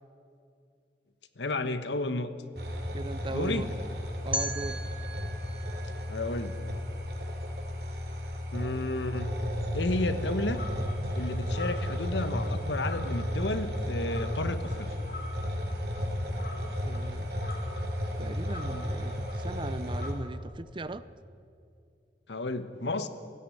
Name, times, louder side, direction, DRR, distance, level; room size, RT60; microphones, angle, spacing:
voice 1, 1.4-2.3 3.3-3.7 6.1-6.5 8.5-9.3 9.7-10.6 11.1-14.9 22.3-23.1, left 2 dB, 85° left, 10 dB, 1.3 m, -32 dB
sound 1, 2.5-20.1, equal, 65° right, 3.1 m, -33 dB
voice 2, 2.9-3.7 4.2-4.8 16.8-17.4 18.2-21.1, right 2 dB, 30° right, 15 dB, 0.6 m, -38 dB
sound 2, 4.3-7.3, right 2 dB, 5° right, 1.1 m, -38 dB
sound 3, 10.5-20.1, left 2 dB, 55° left, 4.1 m, -47 dB
16.5 x 16.5 x 9.9 m, 2.5 s
head